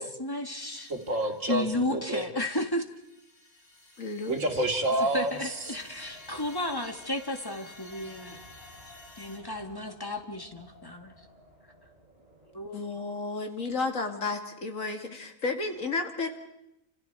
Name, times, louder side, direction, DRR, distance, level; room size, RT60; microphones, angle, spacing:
voice 1, 0.0-0.9 1.5-2.9 4.9-8.4 9.2-11.1 12.5-12.8, left 1 dB, 15° left, 5 dB, 1.9 m, -33 dB
sound 1, 0.6-2.0 2.5-9.4, left 2 dB, 65° left, 4.3 m, -52 dB
voice 2, 0.9-2.2 4.3-5.5, right 1 dB, 75° right, 4 dB, 2.6 m, -28 dB
voice 3, 4.0-4.4 12.7-16.3, left 3 dB, 85° left, 4 dB, 2.6 m, -32 dB
Wind, 4.5-12.9, left 1 dB, 45° right, 8.1 m, -55 dB
29.0 x 26.5 x 4.7 m, 0.85 s
omnidirectional pair, 1.3 m